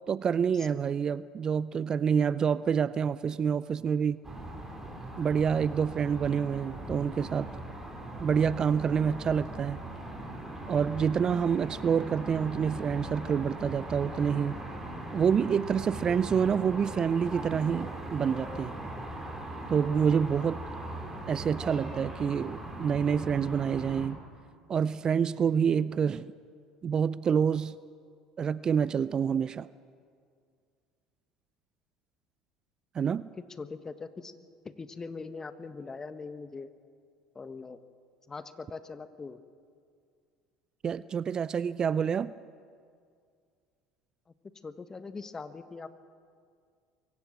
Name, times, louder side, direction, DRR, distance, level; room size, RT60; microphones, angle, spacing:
voice 1, 0.1-4.2 5.2-7.5 8.2-9.8 10.7-14.6 15.1-18.7 19.7-20.6 21.3-24.2 24.7-26.3 26.8-27.8 28.4-29.7 32.9-33.3 40.8-42.3, right 7 dB, 35° right, 18 dB, 0.4 m, -27 dB
sound 1, 4.2-24.1, right 1 dB, 15° right, 4.7 m, -40 dB
voice 2, 33.6-34.3 34.6-36.7 37.3-37.8 38.3-39.4 44.6-45.9, left 4 dB, 25° left, 12 dB, 1.3 m, -41 dB
23.5 x 15.5 x 7.5 m, 2.2 s
hypercardioid pair, 65°, 2 cm